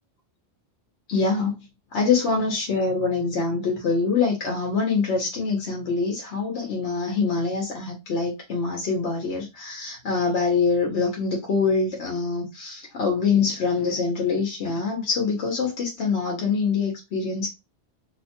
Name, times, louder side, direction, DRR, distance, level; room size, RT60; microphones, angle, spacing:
voice 1, 1.1-1.6 1.9-17.5, left 4 dB, 85° left, 1.1 m, -24 dB
2.9 x 2.1 x 2.8 m
omnidirectional pair, 1.1 m